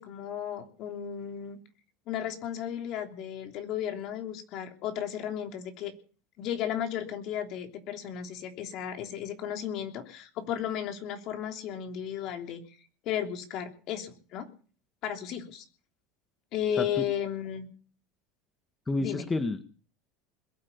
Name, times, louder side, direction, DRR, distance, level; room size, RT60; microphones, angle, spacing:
voice 1, 0.0-1.6 2.1-5.9 6.4-12.6 13.0-14.5 15.0-15.6 16.5-17.7 19.0-19.3, left 9 dB, 55° left, 5 dB, 3.2 m, -34 dB
voice 2, 18.9-19.6, left 2 dB, 15° left, 8 dB, 1.8 m, -30 dB
21.5 x 8.8 x 7.1 m, 0.41 s
supercardioid pair, 105°, 0 cm